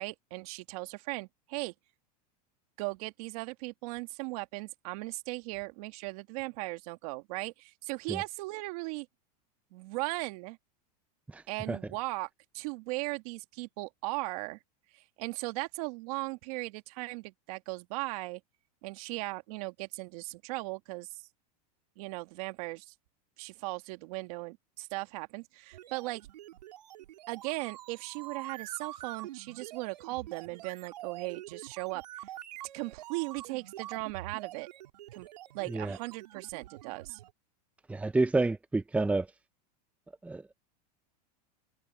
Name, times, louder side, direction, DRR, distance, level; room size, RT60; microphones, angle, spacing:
voice 1, 0.0-1.7 2.8-9.1 9.7-10.6 11.5-12.3 12.5-14.6 14.9-18.4 18.8-21.3 22.0-22.9 23.4-26.2 27.3-32.3 32.7-34.7 35.1-35.3 35.5-37.2, right 24 dB, 60° right, 2.1 m, -38 dB
sound 1, 25.7-37.3, right 14 dB, 85° right, 4.8 m, -46 dB
voice 2, 37.9-39.3 40.2-40.6, right 3 dB, 5° right, 0.9 m, -29 dB
supercardioid pair, 130°, 21 cm